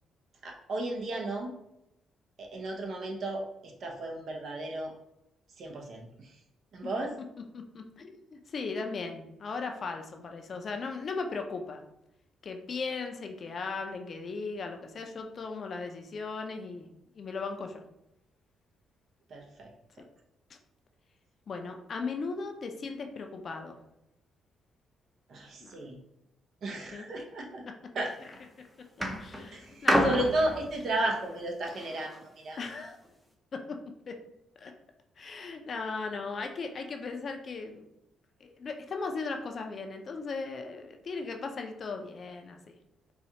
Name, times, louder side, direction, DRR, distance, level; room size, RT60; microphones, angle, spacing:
voice 1, 0.4-1.5 2.4-4.9 5.6-6.3 6.7-7.1 19.3-19.7 25.3-26.0 26.6-27.6 27.9-28.1 29.5-32.1 32.4-32.6, right 2 dB, 60° right, 0 dB, 0.7 m, -33 dB
voice 2, 7.5-11.8 12.4-16.9 17.2-17.8 20.5-20.6 21.5-23.8 25.6-25.7 26.9-27.1 28.2-28.3 28.6-28.7 29.2-30.3 32.6-33.0 33.5-33.8 34.1-34.2 34.6-34.7 35.2-37.9 38.4-42.6, left 4 dB, 50° left, 4 dB, 0.5 m, -37 dB
sound 1, 28.0-28.4 29.0-32.2 33.1-33.2, equal, 5° right, 0.6 m, -30 dB
4.2 x 2.3 x 2.8 m, 0.83 s
cardioid pair, 90°, 0 cm